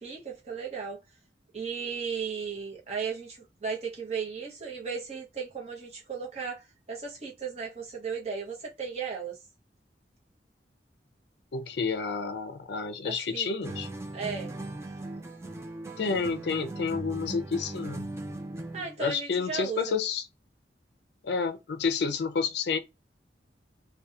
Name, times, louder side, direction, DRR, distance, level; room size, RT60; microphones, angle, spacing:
voice 1, 0.0-1.0 1.5-9.4 13.0-13.5 14.1-14.5 18.7-19.9, right 6 dB, 35° right, 0.8 m, -35 dB
voice 2, 11.5-13.9 16.0-18.1 19.0-20.3 21.2-22.8, left 5 dB, 70° left, 0.4 m, -30 dB
sound 1, 13.6-19.0, right 2 dB, 15° right, 0.3 m, -38 dB
2.7 x 2.2 x 2.3 m
head